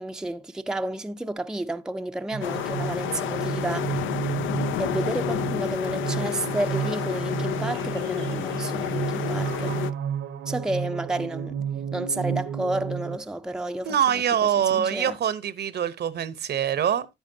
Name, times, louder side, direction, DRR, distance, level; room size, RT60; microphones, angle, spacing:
voice 1, 0.0-3.9 4.8-9.8 10.5-11.6 11.9-15.2, right 1 dB, 5° right, 0.5 m, -31 dB
sound 1, 2.3-13.2, right 8 dB, 80° right, 1.0 m, -31 dB
sound 2, 2.4-9.9, left 12 dB, 80° left, 0.5 m, -30 dB
voice 2, 13.9-17.1, right 9 dB, 55° right, 0.8 m, -24 dB
10.0 x 9.2 x 2.7 m
cardioid pair, 90°, 20 cm